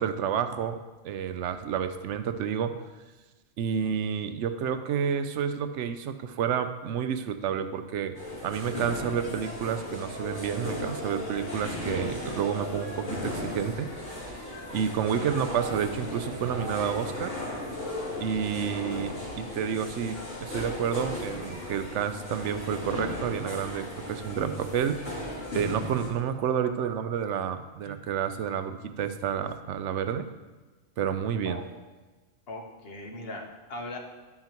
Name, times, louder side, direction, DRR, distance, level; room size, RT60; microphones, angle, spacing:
voice 1, 0.0-2.8 3.6-8.2 8.4-13.9 14.7-17.4 18.2-25.0 25.5-30.3 31.0-31.6, right 8 dB, 70° right, 10 dB, 0.9 m, -30 dB
sound 1, 8.1-26.1, left 1 dB, 75° left, 2.9 m, -36 dB
voice 2, 32.5-34.0, left 2 dB, 50° left, 1 dB, 1.2 m, -39 dB
12.0 x 5.7 x 2.9 m, 1.2 s
omnidirectional pair, 1.3 m